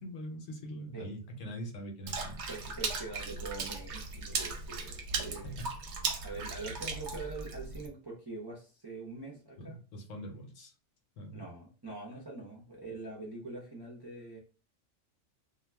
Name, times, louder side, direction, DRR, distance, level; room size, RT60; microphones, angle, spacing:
voice 1, 0.0-2.5 5.4-5.7 9.6-10.7 11.2-11.4, equal, 70° left, 3 dB, 1.0 m, -43 dB
Water / Splash splatter, 2.1-7.9, right 4 dB, 65° right, 0.8 m, -37 dB
voice 2, 2.5-5.6 6.2-9.8 11.3-14.4, right 3 dB, 25° right, -4 dB, 0.5 m, -44 dB
2.3 x 2.3 x 3.2 m, 0.36 s
omnidirectional pair, 1.4 m